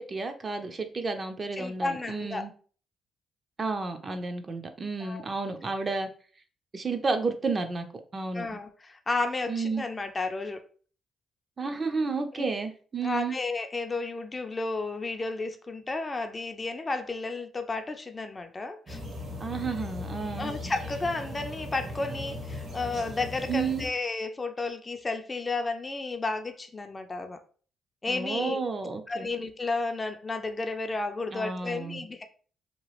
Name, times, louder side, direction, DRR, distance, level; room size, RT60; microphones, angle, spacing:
voice 1, 0.0-2.5 3.6-6.1 6.7-7.8 8.1-8.5 9.5-9.8 11.6-13.4 19.4-20.5 23.5-23.9 28.1-29.3 31.3-32.0, right 4 dB, 35° right, 7 dB, 0.4 m, -31 dB
voice 2, 1.6-2.5 5.0-5.2 8.3-10.6 12.3-12.4 13.0-19.0 20.4-27.4 28.0-28.6 29.1-32.3, left 3 dB, 25° left, 6 dB, 0.4 m, -32 dB
sound 1, 18.9-23.9, left 1 dB, 55° right, 0.9 m, -38 dB
2.9 x 2.3 x 2.9 m, 0.43 s
cardioid pair, 90°, 0 cm